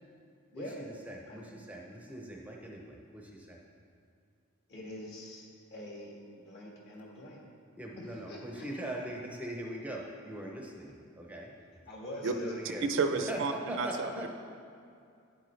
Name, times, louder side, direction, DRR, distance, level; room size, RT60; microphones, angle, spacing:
voice 1, 0.5-3.6 7.8-11.6 12.2-12.9 13.1-14.3, right 1 dB, 5° right, -1 dB, 0.6 m, -41 dB
voice 2, 4.7-6.1 6.5-7.4 8.0-8.7 11.9-12.7, left 1 dB, 50° left, -3 dB, 1.7 m, -44 dB
voice 3, 12.8-14.1, right 4 dB, 60° right, 7 dB, 0.5 m, -31 dB
9.5 x 7.9 x 3.2 m, 2.4 s
head